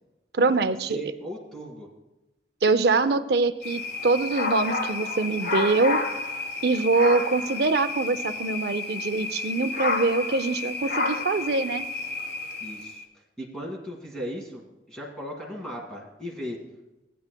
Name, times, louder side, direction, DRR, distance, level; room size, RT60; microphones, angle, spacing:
voice 1, 0.3-1.0 2.6-6.0 6.6-11.9, right 3 dB, 60° right, 11 dB, 0.5 m, -24 dB
voice 2, 0.9-1.9 12.6-13.0 13.4-16.6, equal, 5° left, -3 dB, 1.8 m, -37 dB
sound 1, 3.6-13.0, left 3 dB, 55° left, 1.3 m, -30 dB
sound 2, 3.9-9.1, left 2 dB, 75° left, 3.8 m, -51 dB
19.0 x 9.3 x 2.2 m, 1.0 s
head